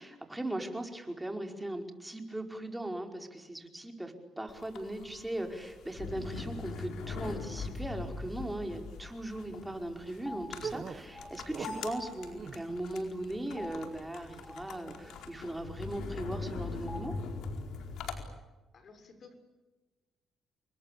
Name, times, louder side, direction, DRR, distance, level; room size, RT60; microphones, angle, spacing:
voice 1, 0.0-17.1, right 1 dB, 10° right, 4 dB, 5.0 m, -39 dB
sound 1, 4.5-18.2, left 4 dB, 80° left, 4.5 m, -42 dB
sound 2, 9.3-17.0, left 2 dB, 20° left, 6.8 m, -51 dB
sound 3, 10.6-11.9 12.3-12.8, right 6 dB, 50° right, 1.7 m, -41 dB
voice 2, 18.0-18.3 18.7-19.3, left 4 dB, 50° left, 8 dB, 6.8 m, -56 dB
29.0 x 22.5 x 8.5 m, 1.2 s
cardioid pair, 90°, 0 cm